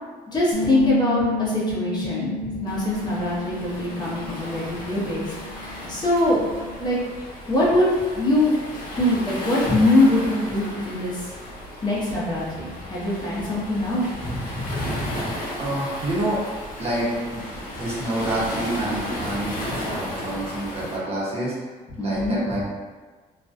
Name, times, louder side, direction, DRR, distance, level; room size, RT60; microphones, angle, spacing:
voice 1, 0.3-6.4 6.8-7.0 7.5-7.9 8.1-8.5 9.0-11.3 11.8-15.3 19.6-19.8 22.0-22.6, left 1 dB, 25° left, -8 dB, 0.7 m, -23 dB
Bass guitar, 0.5-6.8, left 3 dB, 70° left, 0.4 m, -32 dB
Waves surf, 2.7-21.0, left 1 dB, 55° left, 0.9 m, -34 dB
voice 2, 15.6-16.4 16.8-17.4 17.7-21.5 22.0-22.6, right 1 dB, 35° right, -7 dB, 0.9 m, -27 dB
2.4 x 2.2 x 2.5 m, 1.4 s
cardioid pair, 110°, 17 cm